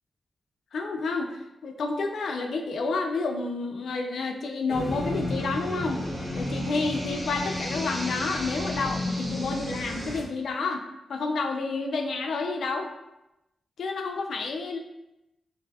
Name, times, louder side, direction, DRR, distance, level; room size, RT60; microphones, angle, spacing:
voice 1, 0.7-6.0 6.3-10.8 11.1-12.9 13.8-14.8, left 3 dB, 80° left, 4 dB, 0.5 m, -30 dB
sound 1, 4.7-10.2, left 1 dB, 25° right, 1.0 m, -32 dB
5.8 x 2.7 x 2.4 m, 0.92 s
wide cardioid pair, 125°, 0 cm